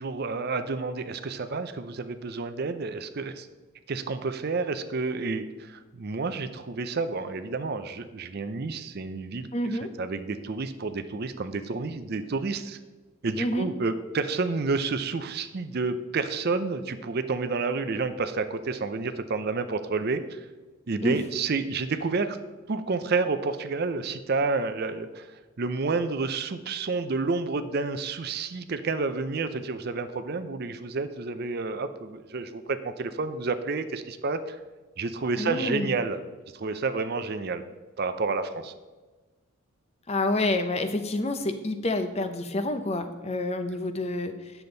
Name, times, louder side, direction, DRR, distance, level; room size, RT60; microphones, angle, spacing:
voice 1, 0.0-3.5 3.9-12.8 13.2-20.5 20.9-22.4 22.7-34.6 35.0-36.2 36.5-37.6 38.0-38.7, right 4 dB, 45° right, 10 dB, 0.5 m, -30 dB
voice 2, 9.5-9.9 13.4-13.7 21.0-21.2 35.4-36.0 40.1-44.5, left 2 dB, 30° left, 8 dB, 0.5 m, -28 dB
9.5 x 7.0 x 3.9 m, 1.3 s
head